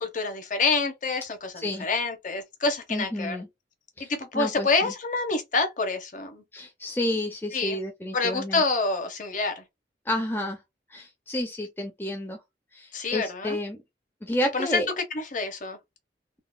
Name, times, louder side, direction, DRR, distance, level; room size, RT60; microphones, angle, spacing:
voice 1, 0.0-3.4 4.0-6.4 7.5-7.8 8.1-9.6 12.9-13.6 14.5-14.8 15.3-15.8, left 3 dB, 45° left, 0.9 m, -27 dB
voice 2, 2.9-3.5 4.0-4.9 6.5-8.6 10.1-10.6 10.9-12.4 12.7-13.8 14.2-14.9, left 1 dB, 10° left, 0.5 m, -30 dB
3.8 x 2.3 x 2.2 m
head